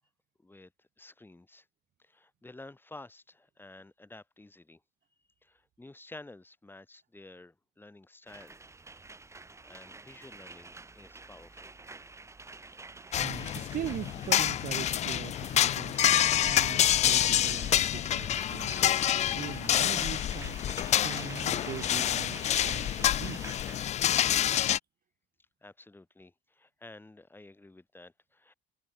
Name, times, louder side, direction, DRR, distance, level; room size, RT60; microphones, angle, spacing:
voice 1, 0.4-1.7 2.0-4.8 5.4-8.6 9.6-11.8 25.6-28.5, left 2 dB, 10° left, 6.6 m, -51 dB
sound 1, 8.3-23.8, right 3 dB, 15° right, 1.9 m, -48 dB
voice 2, 12.9-23.5, right 11 dB, 55° right, 2.0 m, -41 dB
sound 2, 13.1-24.8, left 11 dB, 40° left, 0.4 m, -27 dB
cardioid pair, 110°, 17 cm